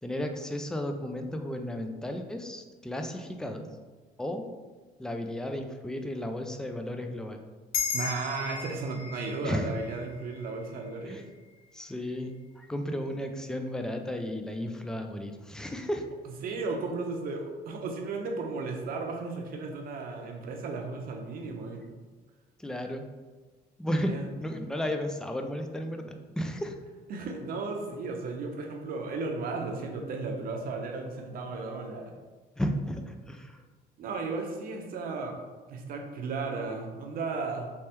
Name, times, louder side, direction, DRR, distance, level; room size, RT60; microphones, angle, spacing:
voice 1, 0.0-3.7 4.2-4.5 5.0-7.4 9.4-9.8 11.1-11.2 11.7-16.1 22.6-23.1 23.8-24.1 24.4-26.8 32.6-33.6, equal, 5° left, 5 dB, 0.3 m, -34 dB
sound 1, 7.7-12.4, left 6 dB, 60° left, 0.7 m, -37 dB
voice 2, 7.9-11.2 16.3-21.9 24.1-24.3 27.1-32.1 34.0-35.4 35.7-37.7, right 3 dB, 60° right, 2 dB, 0.7 m, -35 dB
3.3 x 3.2 x 2.9 m, 1.4 s
cardioid pair, 110°, 17 cm